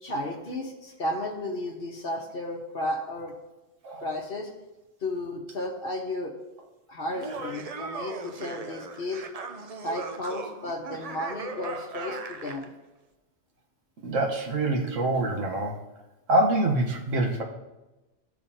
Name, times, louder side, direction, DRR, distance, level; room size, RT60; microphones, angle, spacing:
voice 1, 0.0-3.3 4.0-4.5 5.0-6.3 6.9-9.2 9.8-12.7, left 1 dB, 50° left, 1 dB, 1.3 m, -33 dB
Laughter, 7.1-12.7, right 4 dB, 45° right, 0.5 m, -38 dB
voice 2, 14.0-15.8 16.3-17.4, right 2 dB, 80° right, 2 dB, 1.5 m, -25 dB
15.0 x 4.9 x 2.8 m, 1.1 s
omnidirectional pair, 1.3 m